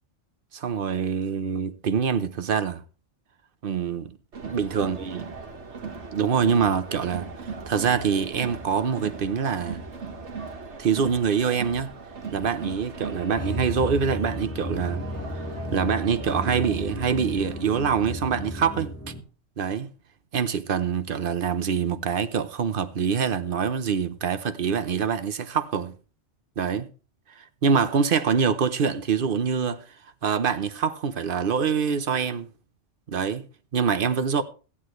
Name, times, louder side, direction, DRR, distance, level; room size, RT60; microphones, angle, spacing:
voice 1, 0.5-2.8 3.6-4.2 4.4-5.2 6.1-7.3 7.7-9.8 10.8-11.9 12.3-15.0 15.7-18.9 19.6-19.9 20.3-25.9 26.6-26.9 27.4-29.8 30.2-32.5 33.1-33.5 33.7-34.4, right 6 dB, 50° right, 0.9 m, -25 dB
Crowd, 4.3-17.9, right 4 dB, 70° right, 1.7 m, -39 dB
sound 1, 13.4-19.2, left 1 dB, 15° left, 1.4 m, -34 dB
15.0 x 9.8 x 3.1 m
omnidirectional pair, 1.2 m